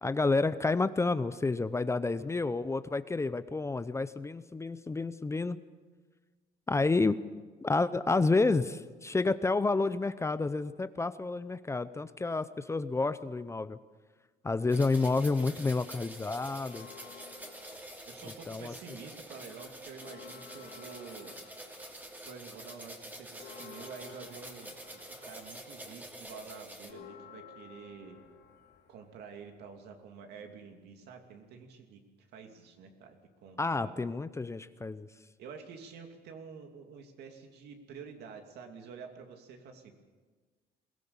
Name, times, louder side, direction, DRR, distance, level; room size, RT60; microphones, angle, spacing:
voice 1, 0.0-5.6 6.7-7.2 7.6-13.8 14.4-16.9 18.5-18.7 33.6-35.1, left 3 dB, 15° left, 13 dB, 0.6 m, -30 dB
sound 1, 14.7-26.9, right 1 dB, 10° right, 2.8 m, -47 dB
Church bell, 16.6-18.9 19.3-19.4 19.7-29.8, left 8 dB, 75° left, 4.6 m, -55 dB
voice 2, 18.1-21.4 22.2-28.2 28.9-34.1 35.4-39.9, right 6 dB, 75° right, 4 dB, 2.7 m, -48 dB
21.5 x 17.5 x 7.1 m, 1.4 s
cardioid pair, 110°, 17 cm